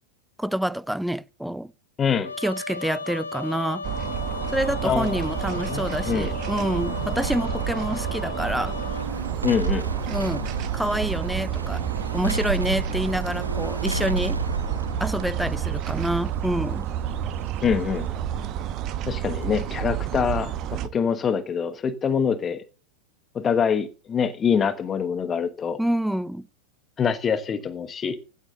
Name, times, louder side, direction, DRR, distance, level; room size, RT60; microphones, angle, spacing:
voice 1, 0.4-1.7 2.4-3.8 4.5-8.8 10.1-10.4 10.7-11.8 12.1-14.4 15.0-16.9 25.8-26.5, right 1 dB, ahead, 0.5 m, -27 dB
voice 2, 2.0-2.3 4.8-5.2 5.5-6.3 9.4-9.8 17.6-18.1 19.0-22.6 23.3-25.8 27.0-28.2, left 7 dB, 20° left, 1.2 m, -25 dB
Trumpet, 2.2-9.1, left 4 dB, 80° left, 3.9 m, -35 dB
sound 1, 3.8-20.9, right 11 dB, 35° right, 1.0 m, -30 dB
sound 2, 3.9-19.4 19.8-19.9, right 3 dB, 85° right, 0.5 m, -33 dB
15.5 x 12.0 x 2.8 m
figure-of-eight pair, 90°, 0 cm